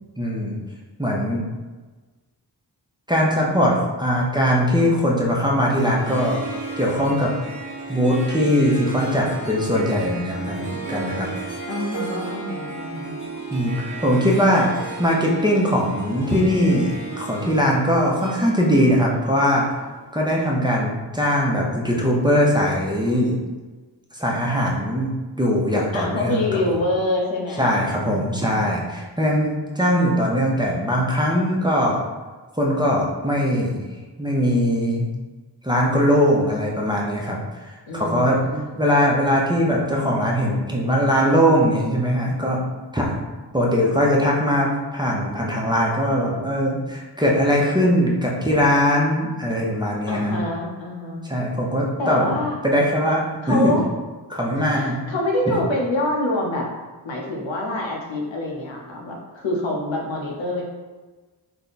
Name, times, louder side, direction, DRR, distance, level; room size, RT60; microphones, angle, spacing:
voice 1, 0.2-0.6 1.0-1.4 3.1-6.4 6.8-7.3 7.9-11.3 13.5-14.7 15.0-19.7 20.1-23.4 24.1-26.8 27.6-32.0 32.5-33.9 34.2-35.1 35.6-37.4 37.6-38.4 38.8-42.6 42.9-43.1 43.5-50.3 51.3-52.2 52.6-53.8 54.3-55.0, equal, 10° right, -3 dB, 0.6 m, -21 dB
Harp, 5.7-20.2, right 3 dB, 45° right, 1.0 m, -34 dB
voice 2, 11.7-13.2 25.9-28.2 37.9-39.0 50.1-51.3 52.0-52.6 53.4-53.8 54.6-56.7 57.0-60.6, left 1 dB, 85° left, -1 dB, 0.8 m, -26 dB
3.5 x 2.2 x 3.9 m, 1.3 s
wide cardioid pair, 80°, 44 cm